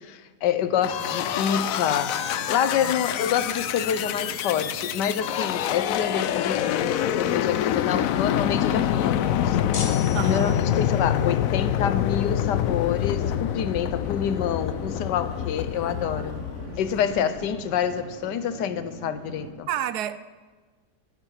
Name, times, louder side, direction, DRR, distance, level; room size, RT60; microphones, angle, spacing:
voice 1, 0.0-2.1 2.5-9.6 9.8-9.9 10.2-16.4 16.8-19.7, left 9 dB, 90° left, 1.4 m, -27 dB
sound 1, 0.6-19.5, right 4 dB, 50° right, 1.5 m, -42 dB
sound 2, 0.8-17.4, left 11 dB, 70° left, 0.9 m, -26 dB
sound 3, 9.7-11.1, left 5 dB, 45° left, 1.2 m, -36 dB
voice 2, 10.1-10.6 15.7-16.8 17.2-17.3 19.7-20.2, right 11 dB, 75° right, 1.1 m, -33 dB
14.5 x 11.0 x 5.8 m
omnidirectional pair, 1.8 m